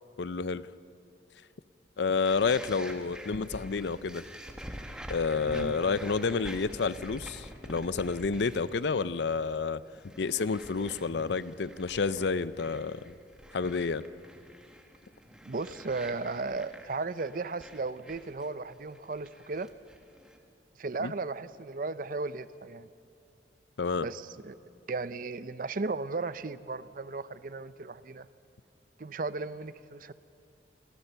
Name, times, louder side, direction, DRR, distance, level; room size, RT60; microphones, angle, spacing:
voice 1, 0.2-0.7 2.0-4.2 5.1-9.8 10.2-13.1 13.5-14.0 21.0-21.1 23.8-24.1, left 4 dB, 75° left, 16 dB, 0.6 m, -30 dB
sound 1, 2.2-8.9 9.1-9.5 9.9-20.4, equal, 5° right, 1.4 m, -47 dB
voice 2, 5.4-5.7 15.4-19.7 20.8-22.9 24.0-24.6 24.9-28.3 29.0-30.1, right 3 dB, 50° right, 14 dB, 0.6 m, -35 dB
27.5 x 16.0 x 6.8 m, 2.5 s
head